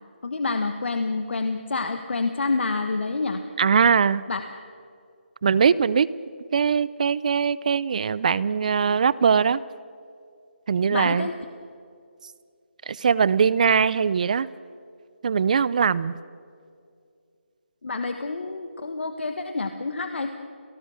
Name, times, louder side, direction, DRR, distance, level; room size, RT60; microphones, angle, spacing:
voice 1, 0.2-3.4 4.3-4.4 10.9-11.3 17.8-20.3, left 3 dB, 65° left, 7 dB, 1.5 m, -28 dB
voice 2, 3.6-4.3 5.4-6.1 6.5-9.6 10.7-11.3 12.9-14.5 15.2-16.2, right 6 dB, 40° right, 20 dB, 0.5 m, -21 dB
27.5 x 18.5 x 6.5 m, 2.3 s
figure-of-eight pair, 165°, 6 cm